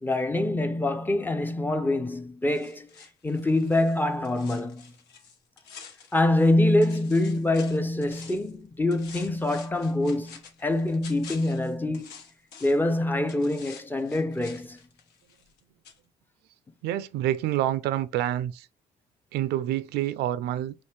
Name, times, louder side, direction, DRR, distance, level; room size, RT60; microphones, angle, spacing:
voice 1, 0.0-2.9 3.2-4.8 6.1-12.1 12.6-14.8, left 1 dB, 10° left, 0.5 m, -25 dB
sound 1, 2.5-6.5 6.8-8.5 8.9-12.9 13.3-15.6 15.8-16.0, left 6 dB, 80° left, 1.1 m, -48 dB
voice 2, 16.8-18.7 19.3-20.7, right 12 dB, 75° right, 0.4 m, -27 dB
4.4 x 3.0 x 3.3 m
cardioid pair, 110°, 17 cm